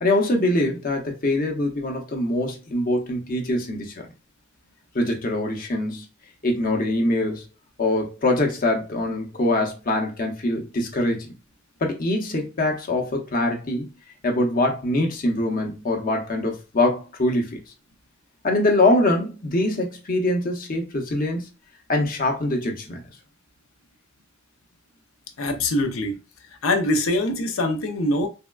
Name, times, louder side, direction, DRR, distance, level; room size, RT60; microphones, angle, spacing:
voice 1, 0.0-4.1 4.9-6.0 6.4-7.5 7.8-11.3 11.8-13.9 14.2-17.6 18.4-21.5 21.9-23.0, left 1 dB, 45° left, 0.7 m, -23 dB
voice 2, 25.4-26.2 26.6-28.3, left 1 dB, 80° left, 0.6 m, -23 dB
3.5 x 2.2 x 2.2 m
head